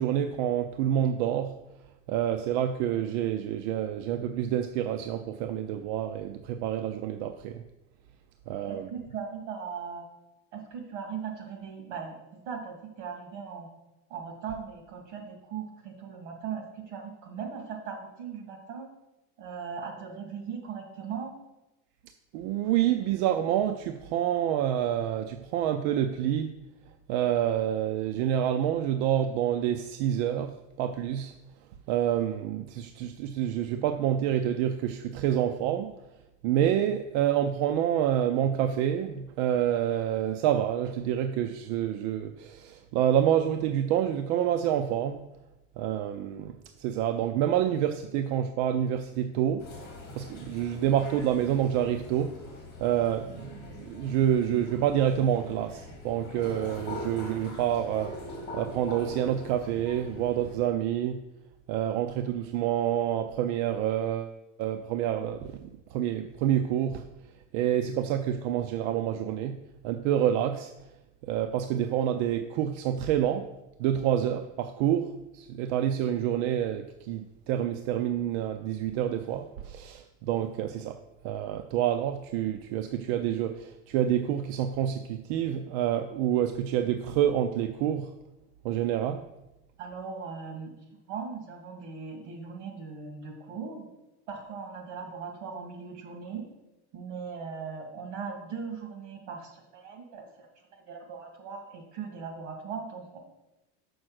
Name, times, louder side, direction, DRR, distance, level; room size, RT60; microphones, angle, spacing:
voice 1, 0.0-1.5 2.1-7.6 8.5-8.9 22.3-26.5 27.1-31.3 31.9-35.9 36.4-45.2 45.8-46.5 46.8-49.6 50.2-52.3 52.8-58.2 58.5-61.2 61.7-67.0 67.5-69.6 69.8-70.7 71.2-73.5 73.8-81.0 81.2-88.1 88.6-89.2, right 10 dB, 65° right, 8 dB, 0.5 m, -28 dB
voice 2, 8.6-10.1 10.5-12.2 12.4-13.7 14.1-18.9 19.4-21.3 89.8-93.9 94.3-96.4 96.9-103.2, right 6 dB, 80° right, 2 dB, 2.1 m, -39 dB
sound 1, 49.6-60.5, left 2 dB, 30° left, 2.2 m, -43 dB
6.3 x 4.2 x 6.4 m, 0.96 s
cardioid pair, 165°, 34 cm